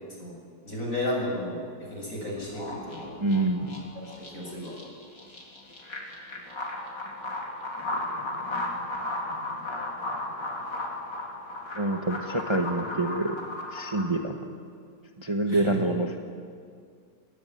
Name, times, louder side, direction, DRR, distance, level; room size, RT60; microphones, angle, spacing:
voice 1, 0.6-3.1 3.9-4.0 4.3-4.7 15.5-15.8, left 1 dB, 50° left, -1 dB, 7.8 m, -33 dB
sound 1, 2.4-14.1, left 2 dB, 85° left, 4.4 m, -35 dB
voice 2, 3.2-3.7 11.7-13.4 13.7-14.4 15.2-16.2, right 2 dB, 15° right, 3 dB, 1.3 m, -26 dB
29.0 x 21.5 x 9.3 m, 2.2 s
omnidirectional pair, 1.9 m